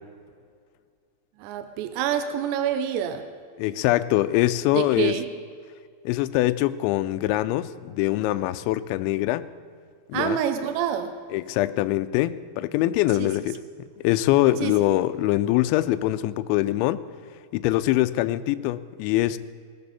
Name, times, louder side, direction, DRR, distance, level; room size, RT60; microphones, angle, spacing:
voice 1, 1.4-3.2 4.7-5.3 10.1-11.1 13.1-13.3 14.6-14.7, right 9 dB, 80° right, 8 dB, 2.9 m, -27 dB
voice 2, 3.6-5.1 6.1-9.5 10.1-10.4 11.3-13.6 14.0-17.0 17.5-19.4, left 15 dB, 85° left, 11 dB, 2.9 m, -23 dB
20.0 x 13.5 x 4.2 m, 2.1 s
omnidirectional pair, 5.3 m